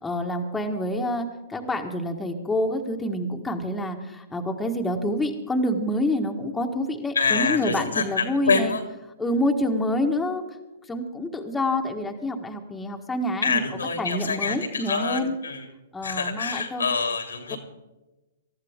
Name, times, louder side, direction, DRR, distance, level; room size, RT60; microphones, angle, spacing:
voice 1, 0.0-8.7 9.2-10.4 10.9-13.6 14.0-15.3 15.9-16.9 17.5-17.6, left 1 dB, 10° left, 2 dB, 1.5 m, -27 dB
voice 2, 7.1-8.8 13.4-15.6 16.0-17.6, left 5 dB, 85° left, 5 dB, 2.7 m, -26 dB
19.5 x 13.5 x 3.6 m, 1.1 s
hypercardioid pair, 120°, 0 cm